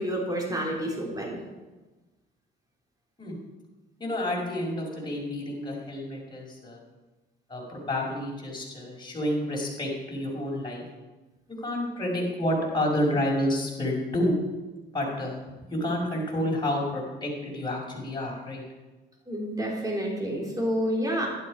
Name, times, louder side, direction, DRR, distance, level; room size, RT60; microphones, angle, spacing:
voice 1, 0.0-1.4 19.3-21.3, equal, 20° right, -1 dB, 3.8 m, -29 dB
voice 2, 4.0-6.8 7.5-10.8 11.5-14.4 14.9-15.4 15.7-18.6, left 1 dB, 20° left, -3 dB, 5.1 m, -29 dB
11.5 x 11.5 x 4.9 m, 1.2 s
cardioid pair, 90°, 20 cm